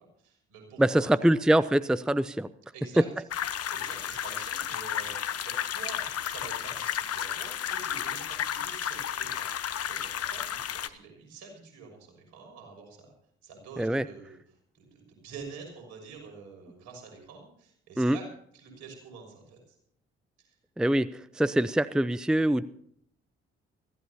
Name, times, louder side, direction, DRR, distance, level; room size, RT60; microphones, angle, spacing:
voice 1, 0.0-1.4 2.7-3.1 3.7-13.1 13.4-18.2 18.5-19.8 20.4-20.6, right 5 dB, 75° right, 2 dB, 6.2 m, -47 dB
voice 2, 0.8-2.5 13.8-14.1 18.0-18.2 20.8-21.1 21.4-22.7, right 1 dB, ahead, 16 dB, 0.6 m, -24 dB
sound 1, 3.3-10.9, left 9 dB, 50° left, 1.0 m, -33 dB
23.5 x 15.0 x 2.8 m, 0.66 s
hypercardioid pair, 40°, 30 cm